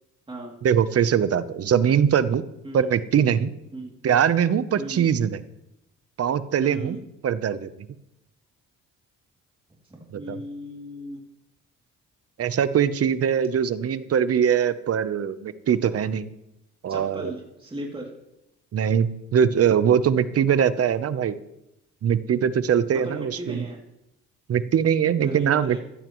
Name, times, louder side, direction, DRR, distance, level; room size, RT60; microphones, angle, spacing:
voice 1, 0.6-2.4 2.7-3.5 4.0-5.4 6.2-7.0 7.2-7.7 10.1-10.4 12.4-16.3 16.8-17.3 18.7-21.4 22.0-23.7 24.5-25.8, right 8 dB, 50° right, 13 dB, 0.8 m, -22 dB
voice 2, 6.7-7.0 9.9-11.2 16.9-18.1 22.9-23.8 25.2-25.8, right 1 dB, 15° right, -2 dB, 2.8 m, -36 dB
15.0 x 14.0 x 3.1 m, 0.86 s
cardioid pair, 90°, 30 cm